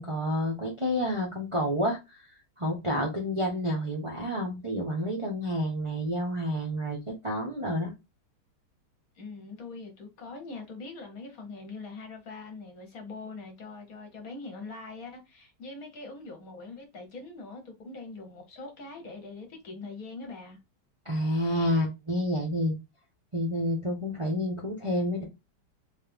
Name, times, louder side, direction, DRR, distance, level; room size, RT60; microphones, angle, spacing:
voice 1, 0.0-2.2 2.6-7.9 21.0-22.8 23.3-25.2, equal, 55° right, 0.3 m, -29 dB
voice 2, 9.1-20.6, left 3 dB, 55° left, 1.1 m, -42 dB
3.2 x 3.2 x 3.4 m
omnidirectional pair, 2.2 m